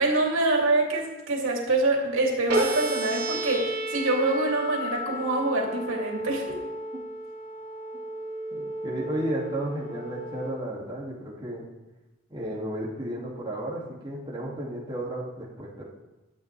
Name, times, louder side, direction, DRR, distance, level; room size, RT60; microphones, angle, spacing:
voice 1, 0.0-6.6, right 2 dB, 85° right, -1 dB, 3.1 m, -25 dB
sound 1, 2.5-10.5, right 1 dB, 50° right, 3.7 m, -33 dB
voice 2, 8.5-11.6 12.3-15.9, right 1 dB, 25° right, -5 dB, 2.5 m, -33 dB
23.5 x 8.7 x 3.4 m, 1.1 s
head